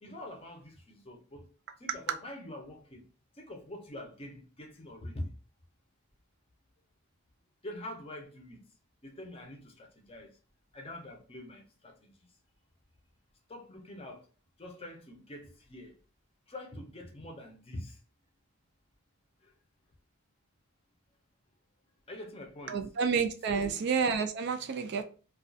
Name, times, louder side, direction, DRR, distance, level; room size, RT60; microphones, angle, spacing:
voice 1, 0.0-1.5 1.8-3.1 3.3-5.3 7.6-8.7 9.0-10.4 10.7-12.3 13.5-14.3 14.6-16.0 16.5-18.0 19.4-19.5 22.1-22.8 23.5-23.8, left 1 dB, 25° left, 0.5 m, -45 dB
voice 2, 22.7-25.0, right 6 dB, 50° right, 0.3 m, -29 dB
2.3 x 2.3 x 2.5 m
head